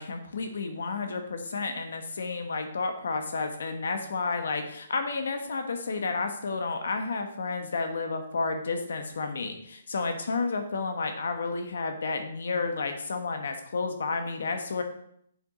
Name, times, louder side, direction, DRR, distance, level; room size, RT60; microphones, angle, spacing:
voice 1, 0.0-14.8, left 4 dB, 75° left, 6 dB, 1.4 m, -31 dB
7.2 x 6.9 x 5.0 m, 0.69 s
hypercardioid pair, 165°, 0 cm